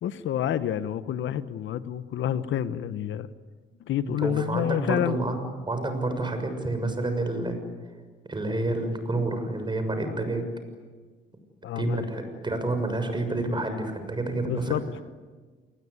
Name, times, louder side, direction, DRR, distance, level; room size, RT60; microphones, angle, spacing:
voice 1, 0.0-3.3 3.8-5.2 11.6-12.1 14.4-15.0, left 10 dB, 75° left, 13 dB, 1.2 m, -28 dB
voice 2, 4.0-7.6 8.3-10.5 11.7-14.7, right 2 dB, 25° right, 7 dB, 6.7 m, -29 dB
28.0 x 21.0 x 9.8 m, 1.4 s
cardioid pair, 90°, 20 cm